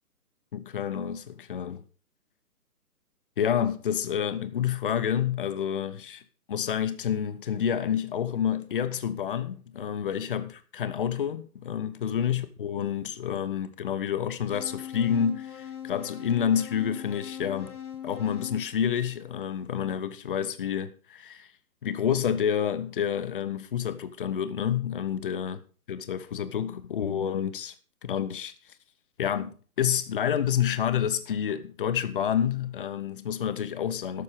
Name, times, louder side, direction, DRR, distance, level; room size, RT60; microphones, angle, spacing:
voice 1, 0.5-1.8 3.4-6.2 6.5-17.8 18.0-21.5 21.8-25.6 25.9-27.7 28.0-28.5 29.2-34.2, left 8 dB, 35° left, 0.9 m, -29 dB
sound 1, 14.5-19.6, left 9 dB, 70° left, 3.0 m, -41 dB
12.5 x 8.3 x 5.1 m
figure-of-eight pair, 140°, 46 cm